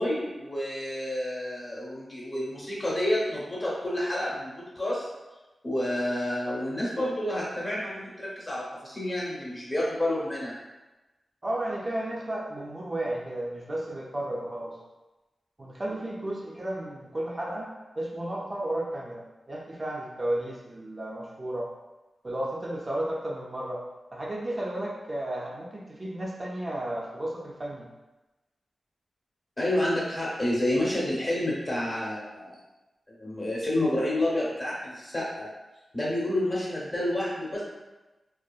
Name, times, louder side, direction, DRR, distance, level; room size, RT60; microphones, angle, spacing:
voice 1, 0.0-5.1 5.6-10.6 29.6-32.6 33.2-35.5 35.9-37.6, left 1 dB, 25° left, -6 dB, 0.8 m, -29 dB
voice 2, 11.4-14.8 15.6-17.7 18.0-21.7 22.2-23.8 24.1-27.9, right 1 dB, 30° right, -4 dB, 0.4 m, -33 dB
2.7 x 2.3 x 2.2 m, 1.1 s
wide cardioid pair, 120°, 0 cm